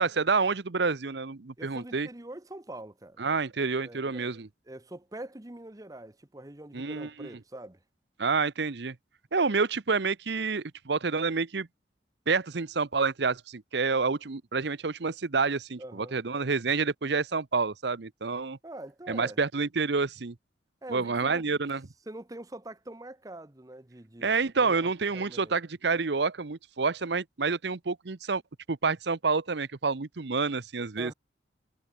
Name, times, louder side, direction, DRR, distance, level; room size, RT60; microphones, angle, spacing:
voice 1, 0.0-2.1 3.2-4.5 6.7-7.3 8.2-9.0 9.3-11.7 12.3-18.6 19.1-20.3 20.9-21.9 24.2-28.4 28.7-31.1, right 4 dB, 65° right, 0.8 m, -28 dB
voice 2, 1.6-3.2 3.8-4.3 4.7-7.8 15.8-16.2 18.6-19.4 20.8-21.4 22.1-25.5 31.0-31.1, right 1 dB, 20° right, 0.9 m, -44 dB
head